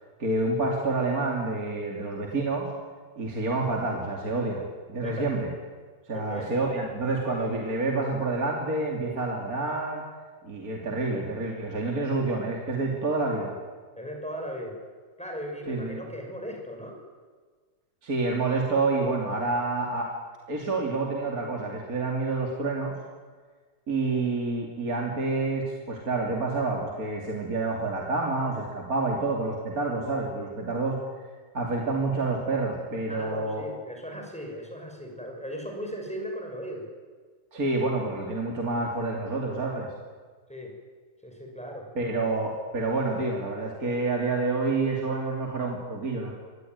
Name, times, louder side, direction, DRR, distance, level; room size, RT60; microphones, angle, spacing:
voice 1, 0.2-2.7 3.2-5.5 6.1-10.0 10.4-13.6 15.7-16.0 18.0-20.1 20.5-22.9 23.9-31.0 31.5-33.6 37.5-39.9 42.0-46.3, right 3 dB, 45° right, 0 dB, 3.3 m, -28 dB
voice 2, 6.1-6.5 14.0-14.8 15.2-17.0 33.1-36.8 40.5-40.7 41.2-41.9, equal, 5° left, 2 dB, 6.3 m, -37 dB
25.5 x 19.5 x 9.5 m, 1.5 s
omnidirectional pair, 2.1 m